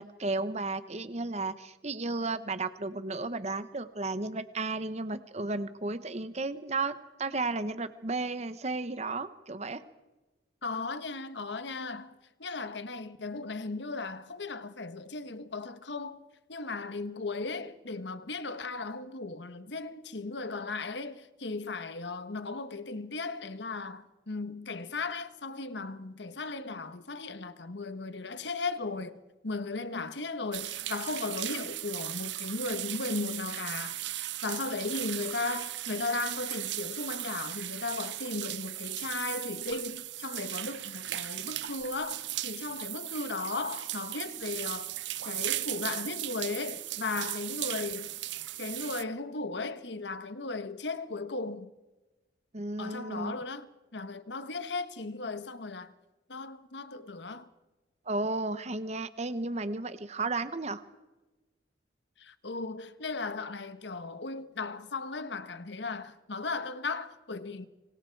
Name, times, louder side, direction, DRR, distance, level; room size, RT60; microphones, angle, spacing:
voice 1, 0.0-9.8 52.5-53.4 58.1-60.8, right 3 dB, 35° right, 1.0 m, -33 dB
voice 2, 10.6-16.2 16.5-29.2 29.4-44.9 45.2-48.1 48.6-51.7 52.8-53.7 53.9-55.9 56.3-57.5 62.2-67.7, left 3 dB, 70° left, 1.2 m, -36 dB
sound 1, 30.5-49.0, right 15 dB, 75° right, 0.7 m, -37 dB
27.0 x 25.5 x 4.7 m
head